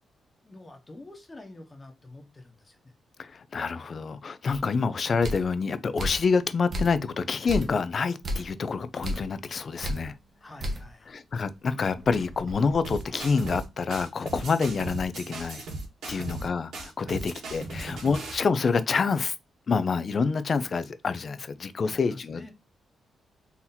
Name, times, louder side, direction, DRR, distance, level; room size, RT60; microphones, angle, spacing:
voice 1, 0.4-2.9 10.4-11.2 16.1-16.4 17.0-17.3 18.1-18.3 21.9-22.5, left 2 dB, 20° left, 1.1 m, -47 dB
voice 2, 3.2-10.1 11.1-15.6 16.1-19.3 19.7-22.5, left 5 dB, 45° left, 0.5 m, -27 dB
sound 1, 4.5-4.6 5.2-5.5 6.0-6.3 6.7-7.1 7.5-7.8 8.2-8.5 9.0-9.3 9.8-10.1 10.6-10.9 11.3-11.4 11.9-13.4, equal, 45° right, 1.1 m, -33 dB
sound 2, 12.8-13.6 13.9-16.5 16.7-18.4, right 2 dB, 80° right, 2.1 m, -37 dB
4.2 x 2.9 x 3.9 m
cardioid pair, 110°, 0 cm